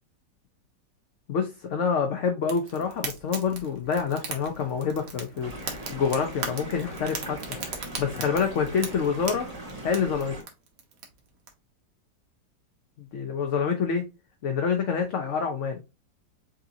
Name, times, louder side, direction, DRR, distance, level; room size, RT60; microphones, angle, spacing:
voice 1, 1.3-5.5 5.9-7.4 8.0-9.5 9.8-10.4 13.0-14.1 14.4-15.8, left 6 dB, 60° left, 0.8 m, -27 dB
Fire, 2.4-11.5, right 5 dB, 70° right, 1.7 m, -39 dB
sound 1, 5.4-10.4, right 1 dB, 25° right, 1.2 m, -40 dB
6.3 x 2.9 x 2.6 m
omnidirectional pair, 1.9 m